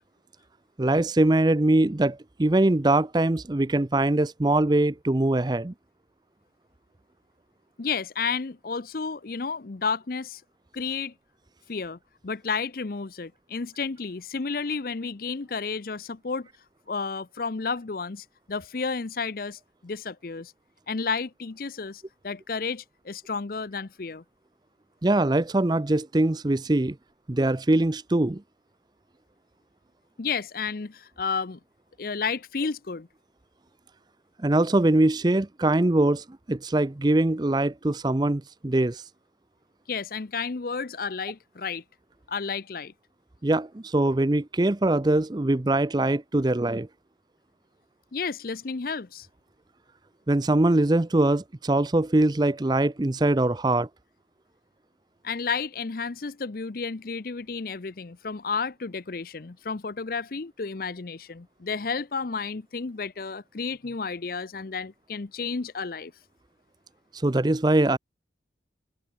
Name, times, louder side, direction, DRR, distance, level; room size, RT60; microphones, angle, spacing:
voice 1, 0.8-5.7 25.0-27.0 27.3-28.4 34.4-39.0 43.4-46.9 50.3-53.9 67.1-68.0, right 2 dB, 25° right, 0.5 m, -22 dB
voice 2, 7.8-10.4 10.7-11.1 11.7-16.5 16.9-20.5 20.9-24.2 30.2-31.6 32.0-33.1 39.9-41.8 42.3-42.9 48.1-49.3 55.2-66.1, left 5 dB, 50° left, 0.6 m, -32 dB
head